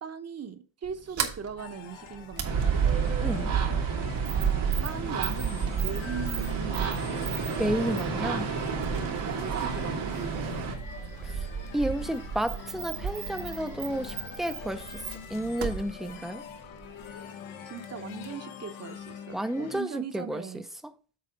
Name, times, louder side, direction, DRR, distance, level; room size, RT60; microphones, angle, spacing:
voice 1, 0.0-3.1 4.3-7.3 8.7-10.7 17.6-20.6, right 6 dB, 35° right, 0.9 m, -40 dB
Sliding door, 0.8-17.2, right 7 dB, 75° right, 1.6 m, -39 dB
sound 1, 1.6-19.8, left 8 dB, 85° left, 1.3 m, -44 dB
sound 2, 2.4-10.7, right 6 dB, 90° right, 2.3 m, -29 dB
voice 2, 7.6-8.5 11.7-14.8 15.3-16.4 19.3-20.4, right 1 dB, ahead, 0.5 m, -31 dB
7.8 x 4.1 x 5.1 m
cardioid pair, 110°, 46 cm